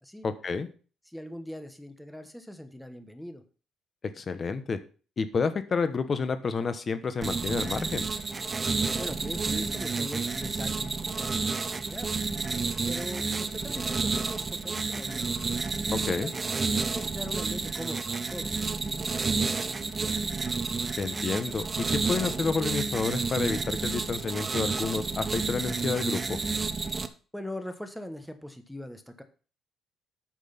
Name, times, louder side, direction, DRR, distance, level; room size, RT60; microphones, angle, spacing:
voice 1, 0.2-0.7 4.2-4.8 5.2-8.1 16.1-16.3 21.0-26.4, left 5 dB, 35° left, 11 dB, 1.1 m, -30 dB
voice 2, 1.1-3.4 9.0-12.1 12.9-15.3 15.9-16.5 16.9-20.2 27.3-29.2, left 1 dB, 5° left, 7 dB, 1.1 m, -41 dB
sound 1, 7.2-27.1, right 4 dB, 25° right, 0.8 m, -30 dB
8.7 x 6.2 x 5.9 m, 0.38 s
cardioid pair, 125°, 0 cm